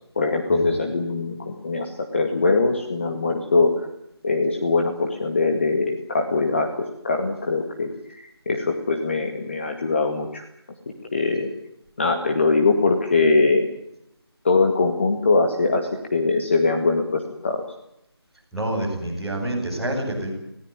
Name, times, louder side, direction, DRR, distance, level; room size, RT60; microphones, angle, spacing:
voice 1, 0.2-3.8 4.2-10.4 11.1-11.5 12.0-13.7 14.4-17.6, left 3 dB, 25° left, 3 dB, 2.1 m, -22 dB
voice 2, 18.5-20.3, right 1 dB, ahead, -10 dB, 5.5 m, -27 dB
21.5 x 18.5 x 9.2 m, 0.83 s
figure-of-eight pair, 170°, 14 cm